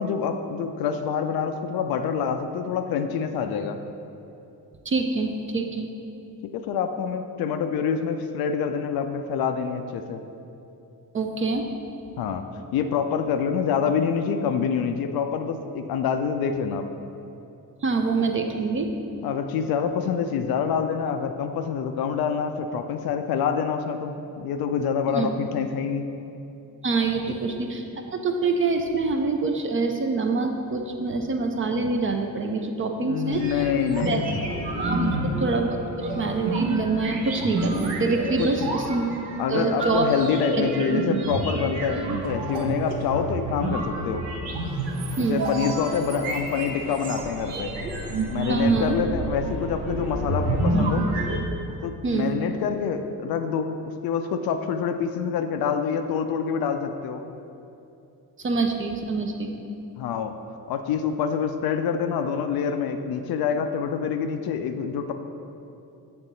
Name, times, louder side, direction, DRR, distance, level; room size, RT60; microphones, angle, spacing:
voice 1, 0.0-3.8 6.5-10.2 12.2-12.4 12.7-16.9 19.2-26.1 27.3-27.4 33.0-34.4 34.9-35.3 38.4-38.7 39.4-44.2 45.2-47.7 48.3-51.1 51.7-53.8 54.0-57.2 60.0-60.4 60.7-65.1, left 6 dB, 50° left, 7 dB, 0.5 m, -26 dB
voice 2, 4.9-5.9 11.1-11.7 17.8-18.9 25.1-25.4 26.8-33.6 34.0-34.2 34.5-39.2 39.5-40.1 40.6-40.7 45.2-45.4 48.5-48.9 52.0-52.3 58.4-59.5, right 3 dB, 25° right, 4 dB, 0.5 m, -25 dB
sound 1, 33.3-51.4, right 2 dB, 65° right, 0.9 m, -29 dB
7.7 x 3.5 x 3.9 m, 2.7 s
figure-of-eight pair, 40°, 50 cm